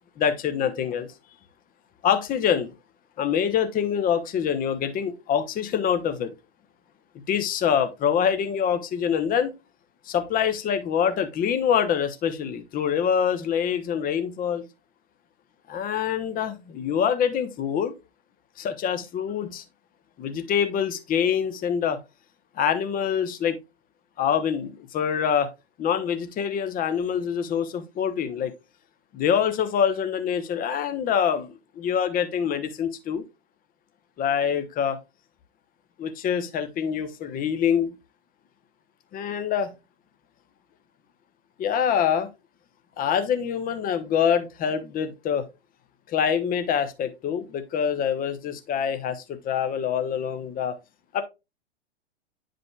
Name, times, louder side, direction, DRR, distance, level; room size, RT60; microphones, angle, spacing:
voice 1, 0.2-1.1 2.0-2.7 3.2-6.3 7.3-9.5 10.1-14.7 15.7-17.9 18.6-19.6 20.2-22.0 22.6-23.6 24.2-25.5 25.8-28.5 29.1-33.3 34.2-35.0 36.0-38.0 39.1-39.7 41.6-42.3 43.0-45.4 46.1-50.8 51.1-51.2, left 8 dB, 25° left, 1.0 m, -25 dB
9.6 x 5.1 x 2.3 m
hypercardioid pair, 105°, 34 cm